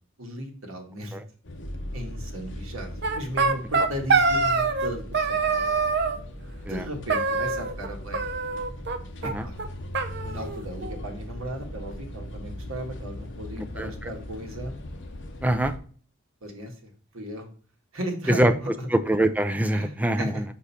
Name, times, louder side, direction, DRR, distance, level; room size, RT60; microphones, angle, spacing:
voice 1, 0.2-1.2 1.9-5.0 5.4-5.8 6.6-8.2 9.2-9.6 10.2-14.8 16.4-17.5 17.9-18.9 19.7-20.4, right 1 dB, 80° right, 2 dB, 1.9 m, -36 dB
sound 1, 1.4-15.8, left 1 dB, 60° left, 1.1 m, -39 dB
sound 2, 3.0-4.9 5.1-6.2 7.1-7.9 8.1-9.0 9.2-9.3 9.6-9.7 9.9-11.0, right 4 dB, 55° right, 0.7 m, -24 dB
voice 2, 13.8-14.1 15.4-15.7 18.3-18.5 18.9-20.4, right 1 dB, 5° right, 8 dB, 0.5 m, -23 dB
5.3 x 5.0 x 4.2 m, 0.43 s
head